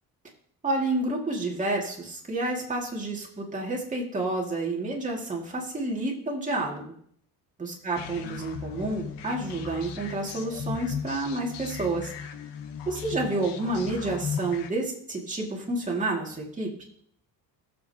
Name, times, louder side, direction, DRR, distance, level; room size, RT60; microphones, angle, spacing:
voice 1, 0.6-6.9 7.6-12.1 12.9-16.7, right 2 dB, 20° right, -2 dB, 2.3 m, -29 dB
sound 1, 8.0-14.7, left 6 dB, 85° left, 1.2 m, -37 dB
18.0 x 7.6 x 2.9 m, 0.63 s
cardioid pair, 145°, 41 cm